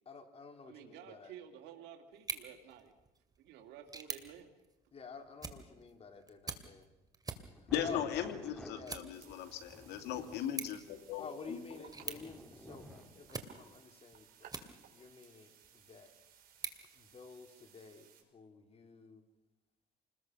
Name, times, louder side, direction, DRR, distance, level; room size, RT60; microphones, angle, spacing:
voice 1, 0.1-1.3 4.9-6.9 7.6-9.0 11.2-16.1 16.9-19.2, left 4 dB, 35° left, 5 dB, 3.9 m, -50 dB
voice 2, 0.7-2.9 3.4-4.5, right 9 dB, 85° right, 3 dB, 2.7 m, -52 dB
sound 1, 2.1-15.1 15.6-17.7, right 4 dB, 20° right, 2.5 m, -49 dB
sound 2, 7.3-13.6, equal, 5° left, 3.2 m, -54 dB
voice 3, 7.7-11.3, left 10 dB, 85° left, 6 dB, 2.7 m, -38 dB
sound 3, 9.1-18.2, right 8 dB, 60° right, 5.3 m, -61 dB
28.5 x 21.0 x 6.2 m, 0.99 s
cardioid pair, 110°, 17 cm